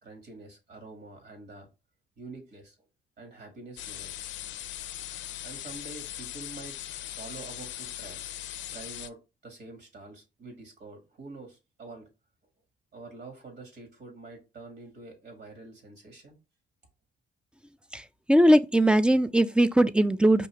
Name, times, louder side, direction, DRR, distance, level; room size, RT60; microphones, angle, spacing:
voice 1, 0.0-1.7 2.2-2.8 3.2-4.1 5.4-6.8 7.0-8.2 8.7-12.1 12.9-16.4, right 3 dB, 55° right, 1.9 m, -46 dB
sound 1, 3.8-9.1, left 12 dB, 70° left, 0.4 m, -39 dB
voice 2, 17.9-20.5, right 1 dB, 5° right, 0.3 m, -21 dB
5.3 x 2.7 x 3.2 m
cardioid pair, 90°, 20 cm